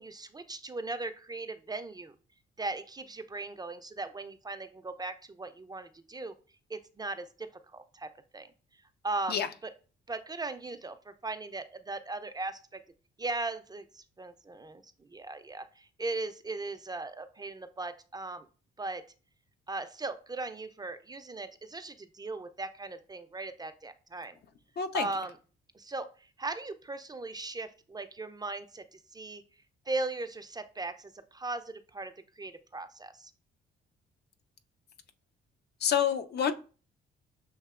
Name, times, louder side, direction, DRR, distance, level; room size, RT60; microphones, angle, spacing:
voice 1, 0.0-2.1 2.6-6.4 6.7-8.5 9.0-9.7 10.1-12.8 13.2-14.8 15.1-18.5 18.8-19.0 19.7-24.3 24.9-25.4 25.7-29.4 29.9-33.3, right 3 dB, 20° right, 0.4 m, -38 dB
voice 2, 24.8-25.1 35.8-36.5, left 8 dB, 55° left, 0.5 m, -27 dB
6.4 x 2.7 x 2.4 m
cardioid pair, 90°, 20 cm